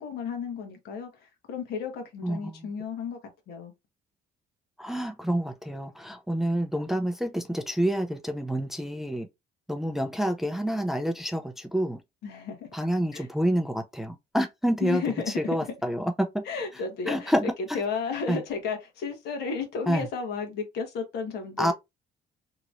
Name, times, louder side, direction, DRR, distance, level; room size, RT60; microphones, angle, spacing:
voice 1, 0.0-3.2 3.5-3.7 12.2-13.3 14.8-15.6 16.4-17.3 17.7-21.7, left 5 dB, 75° left, 1.2 m, -33 dB
voice 2, 2.2-2.6 4.8-9.3 9.7-12.0 12.7-15.0 15.4-16.1 17.1-17.5 18.3-18.4 19.9-20.1 21.6-21.7, equal, ahead, 0.4 m, -28 dB
2.9 x 2.9 x 2.5 m
cardioid pair, 110°, 17 cm